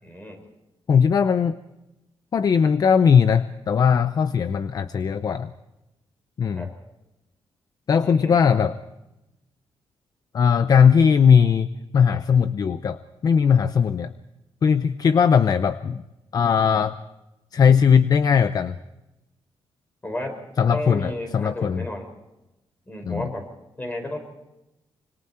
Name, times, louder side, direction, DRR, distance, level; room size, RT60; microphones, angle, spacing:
voice 1, 0.0-0.4 6.5-6.7 8.0-8.6 20.0-20.4 20.7-22.1 22.9-23.5 23.8-24.2, left 1 dB, 20° left, 4 dB, 5.1 m, -32 dB
voice 2, 0.9-1.6 2.3-5.5 6.4-6.7 7.9-8.8 10.3-14.1 14.6-16.0 16.3-17.0 17.5-18.8 20.6-21.8 23.1-23.2, left 7 dB, 45° left, 12 dB, 0.6 m, -19 dB
26.0 x 25.0 x 4.4 m, 0.96 s
wide cardioid pair, 145°, 9 cm